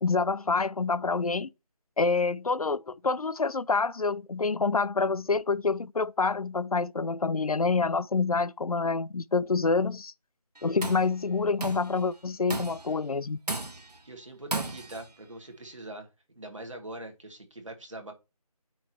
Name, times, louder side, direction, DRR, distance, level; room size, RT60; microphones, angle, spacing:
voice 1, 0.0-1.5 2.0-10.1 10.6-13.4, left 4 dB, 65° left, 0.5 m, -27 dB
Tools, 10.6-11.1 11.6-12.0 12.5-12.9 13.5-14.0 14.5-15.1, right 2 dB, 90° right, 1.5 m, -34 dB
voice 2, 14.0-16.1 16.3-18.1, right 2 dB, 50° right, 1.8 m, -42 dB
8.5 x 3.1 x 4.3 m
figure-of-eight pair, 180°, 20 cm